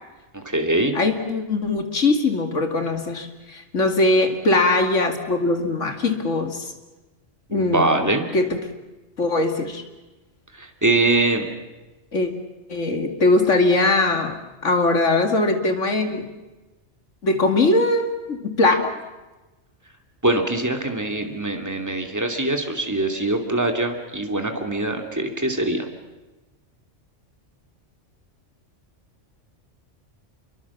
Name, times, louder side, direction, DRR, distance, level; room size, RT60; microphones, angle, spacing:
voice 1, 0.3-0.9 7.5-8.3 10.6-11.5 20.2-25.9, right 2 dB, 15° right, 4 dB, 2.5 m, -23 dB
voice 2, 0.9-6.7 7.5-8.1 8.3-8.6 9.2-9.8 12.1-12.3 12.7-16.3 17.2-19.0, left 2 dB, 80° left, 6 dB, 2.6 m, -21 dB
27.5 x 23.0 x 7.1 m, 1.1 s
omnidirectional pair, 1.3 m